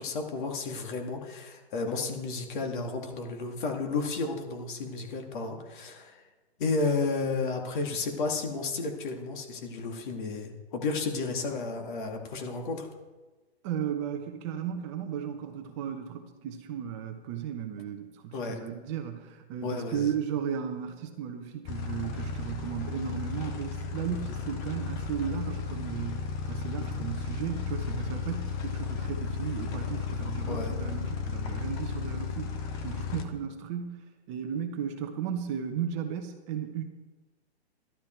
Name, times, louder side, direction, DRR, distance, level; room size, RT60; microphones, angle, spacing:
voice 1, 0.0-6.2 6.6-12.9 18.3-18.6 19.6-20.1 26.8-27.0 30.5-30.8, left 3 dB, 50° left, 3 dB, 2.3 m, -32 dB
voice 2, 13.6-32.6 32.8-36.8, right 8 dB, 30° right, 5 dB, 1.0 m, -35 dB
sound 1, 21.7-33.2, left 5 dB, 10° left, 0.4 m, -34 dB
13.0 x 12.0 x 4.5 m, 1.2 s
hypercardioid pair, 145°, 32 cm